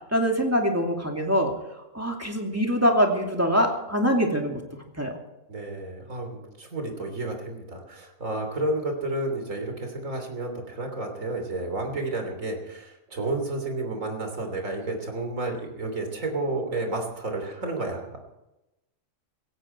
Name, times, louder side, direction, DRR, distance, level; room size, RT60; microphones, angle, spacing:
voice 1, 0.1-1.5 1.9-4.6 5.0-5.2, equal, 10° right, 1 dB, 2.5 m, -23 dB
voice 2, 5.5-18.2, right 2 dB, 75° right, 4 dB, 3.5 m, -31 dB
17.0 x 16.5 x 4.5 m, 0.95 s
omnidirectional pair, 1.4 m